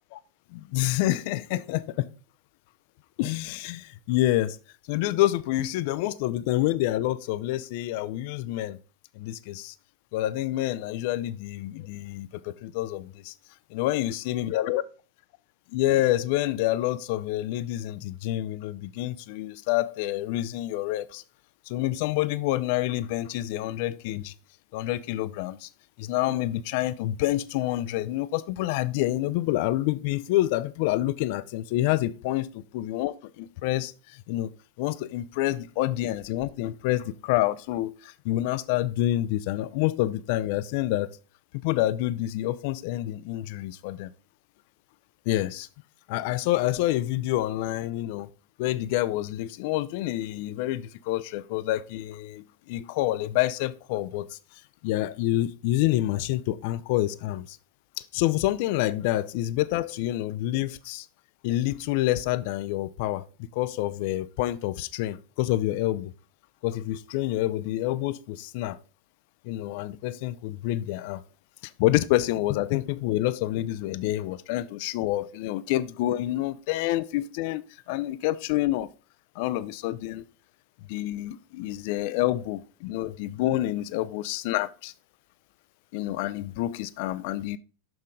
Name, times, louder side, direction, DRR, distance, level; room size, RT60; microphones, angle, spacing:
voice 1, 0.5-2.1 3.2-4.6 4.9-8.8 9.2-9.7 10.1-13.3 13.7-14.8 15.7-21.2 21.7-24.3 24.7-25.7 26.0-32.5 32.7-34.5 34.8-41.1 41.5-44.1 45.3-45.7 46.1-48.3 48.6-54.4 54.8-57.6 58.0-61.1 61.4-63.3 63.5-66.1 66.6-68.8 69.4-71.2 71.8-78.9 79.4-80.2 80.9-84.9 85.9-87.6, left 15 dB, 50° left, 0.4 m, -28 dB
6.3 x 6.0 x 3.6 m
figure-of-eight pair, 90°, 0 cm